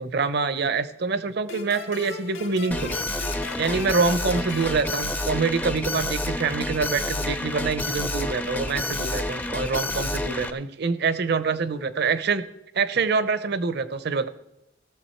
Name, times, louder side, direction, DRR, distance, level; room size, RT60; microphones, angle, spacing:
voice 1, 0.0-2.9 3.6-12.4 12.7-14.3, right 4 dB, 55° right, 14 dB, 0.7 m, -25 dB
sound 1, 1.5-5.8, left 5 dB, 80° left, 1.4 m, -39 dB
Alarm, 2.7-10.5, left 1 dB, 10° left, 0.5 m, -29 dB
17.5 x 6.9 x 4.4 m, 0.87 s
head